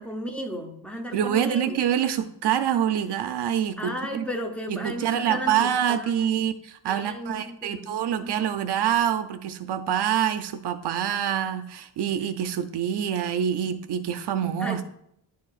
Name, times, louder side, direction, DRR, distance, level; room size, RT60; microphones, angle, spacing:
voice 1, 0.0-1.8 3.8-5.7 6.0-6.3 6.9-8.3 14.6-14.8, equal, 5° left, 2 dB, 0.7 m, -34 dB
voice 2, 1.1-4.3 4.7-14.8, right 9 dB, 70° right, 9 dB, 0.5 m, -26 dB
10.5 x 4.7 x 2.4 m, 0.74 s
wide cardioid pair, 170°, 43 cm